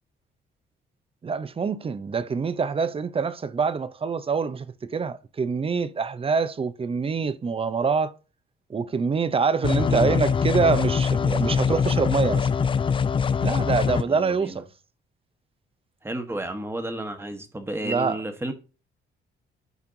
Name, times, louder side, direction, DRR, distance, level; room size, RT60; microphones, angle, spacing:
voice 1, 1.2-8.1 8.7-12.5 13.4-14.7 17.8-18.2, right 5 dB, 30° right, 0.6 m, -25 dB
sound 1, 9.6-14.0, left 6 dB, 25° left, 0.4 m, -23 dB
voice 2, 9.8-10.2 14.0-14.6 16.0-18.5, right 1 dB, 10° right, 1.2 m, -32 dB
12.0 x 4.4 x 2.6 m
cardioid pair, 90°, 20 cm